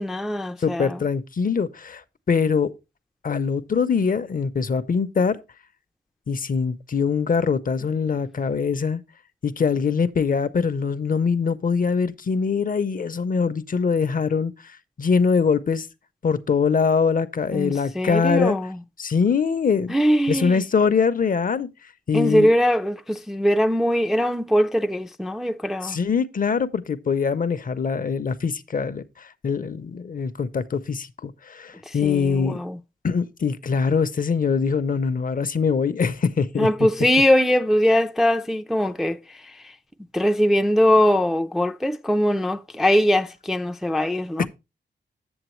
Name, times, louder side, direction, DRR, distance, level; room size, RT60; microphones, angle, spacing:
voice 1, 0.0-1.0 17.5-18.8 19.9-20.6 22.1-26.0 31.9-32.8 36.6-39.2 39.6-39.7 40.1-44.5, equal, ahead, 0.3 m, -21 dB
voice 2, 0.6-2.0 2.3-2.7 3.2-5.4 6.3-9.0 9.4-15.9 16.2-18.6 19.0-19.9 20.3-21.7 22.1-22.5 25.8-32.6 33.0-36.7 44.4-44.5, left 5 dB, 45° left, 0.5 m, -23 dB
7.9 x 7.3 x 3.0 m
wide cardioid pair, 135°, 19 cm